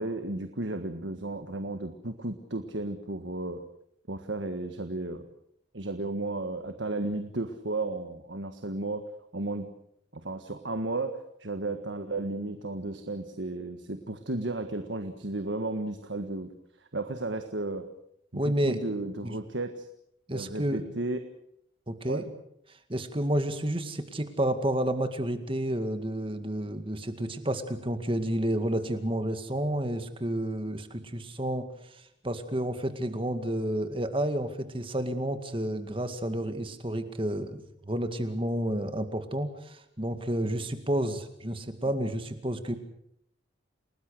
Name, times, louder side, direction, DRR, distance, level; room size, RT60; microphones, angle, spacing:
voice 1, 0.0-3.6 4.1-5.3 5.7-9.0 9.3-9.7 10.1-16.5 16.8-17.9 18.3-19.9 20.3-21.2 22.1-22.3, right 2 dB, 70° right, 7 dB, 1.6 m, -34 dB
voice 2, 18.3-18.8 19.2-19.4 20.3-20.8 21.9-22.2 22.9-42.7, right 1 dB, 25° right, 8 dB, 2.1 m, -30 dB
29.5 x 19.5 x 6.6 m, 0.73 s
head